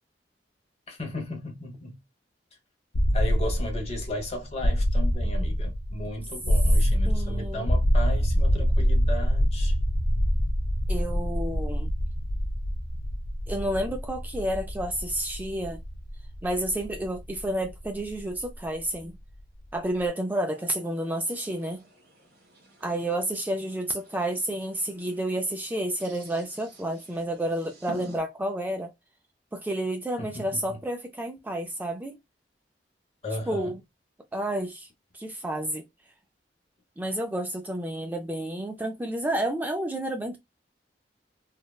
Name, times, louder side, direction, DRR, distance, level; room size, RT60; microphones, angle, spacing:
voice 1, 0.9-2.0 3.1-9.7 30.2-30.8 33.2-33.7, left 1 dB, 35° left, 0.9 m, -35 dB
sound 1, 2.9-18.8, equal, 75° left, 0.6 m, -25 dB
voice 2, 7.1-7.7 10.9-11.9 13.5-15.8 16.4-19.2 19.7-21.8 22.8-28.9 29.5-32.2 33.5-33.8 34.3-34.9 35.1-35.8 37.0-40.4, right 1 dB, 10° right, 0.3 m, -30 dB
sound 2, 20.5-28.2, right 1 dB, 65° right, 1.5 m, -51 dB
3.3 x 2.1 x 2.2 m
head